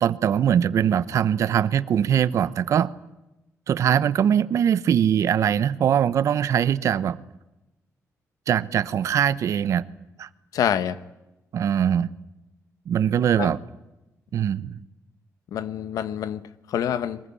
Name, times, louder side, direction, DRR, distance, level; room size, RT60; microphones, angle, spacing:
voice 1, 0.0-2.9 3.7-7.2 8.5-9.9 10.2-10.3 11.5-12.1 12.9-13.6 14.3-14.7, right 9 dB, 60° right, 0.9 m, -22 dB
voice 2, 10.5-11.0 13.4-13.6 15.5-16.4 16.7-17.2, left 9 dB, 85° left, 1.3 m, -26 dB
23.0 x 20.5 x 9.9 m
wide cardioid pair, 155°, 6 cm